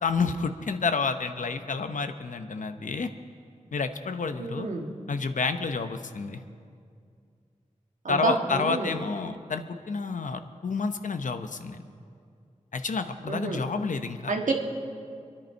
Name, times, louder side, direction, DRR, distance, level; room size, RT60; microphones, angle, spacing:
voice 1, 0.0-3.1 3.7-4.7 5.1-6.4 8.1-11.8 12.7-14.4, left 4 dB, 80° left, 8 dB, 0.8 m, -29 dB
voice 2, 4.4-4.9 8.0-9.0 13.3-13.6 14.3-14.5, right 3 dB, 75° right, 2 dB, 1.6 m, -29 dB
25.5 x 11.0 x 4.5 m, 2.3 s
wide cardioid pair, 100°, 13 cm